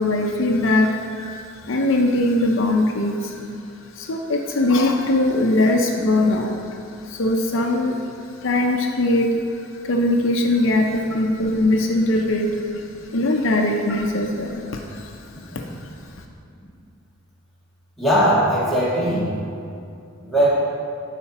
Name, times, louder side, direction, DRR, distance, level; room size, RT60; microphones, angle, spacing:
voice 1, 0.0-16.1, left 1 dB, 65° left, 2 dB, 0.7 m, -21 dB
voice 2, 18.0-19.3 20.2-20.5, equal, ahead, -9 dB, 2.1 m, -19 dB
12.0 x 4.9 x 4.2 m, 2.5 s
head